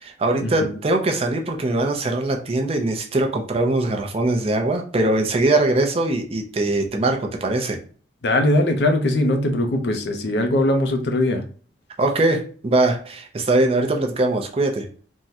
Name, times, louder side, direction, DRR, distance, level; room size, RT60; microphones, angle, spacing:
voice 1, 0.0-7.8 12.0-14.9, right 2 dB, 35° right, 3 dB, 0.5 m, -21 dB
voice 2, 8.2-11.4, left 1 dB, 70° left, 4 dB, 0.5 m, -20 dB
3.6 x 2.1 x 2.7 m, 0.41 s
head